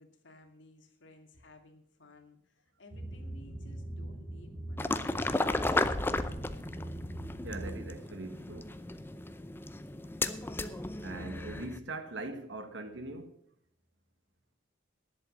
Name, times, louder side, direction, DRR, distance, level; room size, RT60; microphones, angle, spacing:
voice 1, 0.0-5.8, left 2 dB, 85° left, 2.2 m, -58 dB
sound 1, 2.9-7.9, right 1 dB, 5° right, 3.1 m, -42 dB
sound 2, 4.8-11.8, left 2 dB, 10° left, 0.5 m, -34 dB
voice 2, 7.4-8.8 11.0-13.3, right 2 dB, 75° right, 1.4 m, -41 dB
11.0 x 8.0 x 7.1 m
head